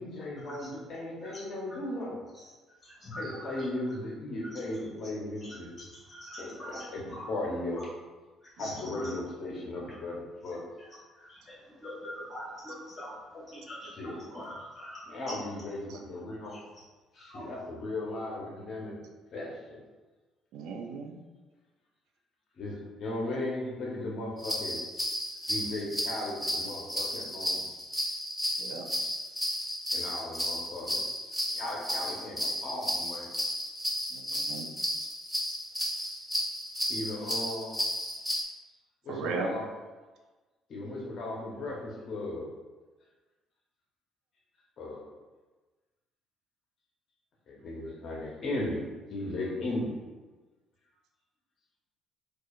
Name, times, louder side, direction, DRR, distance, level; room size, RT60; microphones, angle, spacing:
voice 1, 0.0-2.2 3.2-5.7 6.4-7.8 8.6-10.6 13.9-14.3 15.1-16.6 17.1-19.0 19.3-19.8 22.6-24.8 25.5-27.7 29.9-31.0 31.5-33.3 36.9-37.8 39.0-39.6 40.7-42.5 44.8-45.1 47.5-48.8 49.1-50.1, left 2 dB, 40° left, -3 dB, 0.7 m, -36 dB
voice 2, 6.1-6.8 7.1-7.2 8.6-8.7 11.8-13.1 13.5-13.8 14.3-15.0 17.2-17.4, equal, 15° left, -6 dB, 1.2 m, -42 dB
voice 3, 8.8-9.1 12.7-12.8 15.9-16.0 20.5-21.2 28.6-28.9 34.1-34.7 35.5-35.6 39.1-39.6, right 4 dB, 75° right, 2 dB, 0.4 m, -37 dB
sound 1, 24.4-38.4, equal, 5° right, 0.5 m, -33 dB
4.4 x 2.3 x 2.3 m, 1.2 s
cardioid pair, 175°, 0 cm